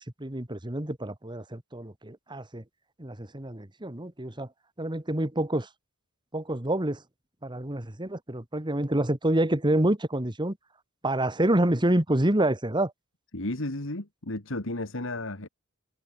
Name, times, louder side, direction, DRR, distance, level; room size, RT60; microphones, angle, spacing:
voice 1, 0.0-2.6 3.0-4.5 4.8-5.7 6.3-7.0 7.4-10.6 11.0-12.9, right 1 dB, 20° right, 1.9 m, -27 dB
voice 2, 13.3-15.5, left 1 dB, 65° left, 2.6 m, -33 dB
head